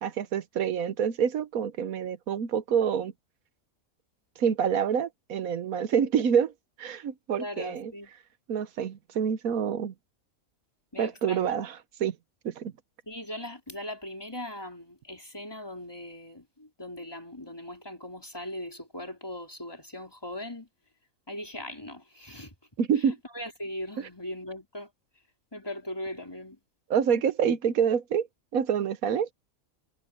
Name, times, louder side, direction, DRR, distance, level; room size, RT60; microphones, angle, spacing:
voice 1, 0.0-3.1 4.4-6.5 6.8-7.9 8.5-9.9 11.0-12.1 12.4-12.7 22.8-23.2 24.0-24.1 26.9-28.3 28.5-29.3, right 7 dB, 75° right, 1.4 m, -27 dB
voice 2, 7.4-8.1 10.9-11.5 13.1-20.7 21.3-22.5 23.0-24.9 25.5-26.6, left 1 dB, 15° left, 4.7 m, -39 dB
omnidirectional pair, 1.5 m